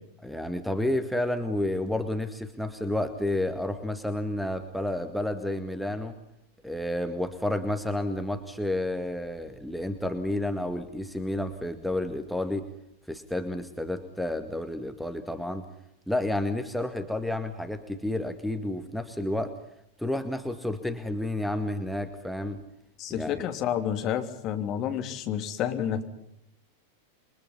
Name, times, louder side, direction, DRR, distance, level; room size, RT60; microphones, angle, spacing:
voice 1, 0.2-6.1 6.6-12.7 13.1-15.6 16.1-19.6 20.0-22.6 23.1-23.4, left 1 dB, ahead, 6 dB, 2.0 m, -30 dB
voice 2, 23.0-26.0, left 9 dB, 35° left, 6 dB, 3.3 m, -30 dB
28.5 x 24.0 x 5.7 m, 0.77 s
figure-of-eight pair, 90°, 0 cm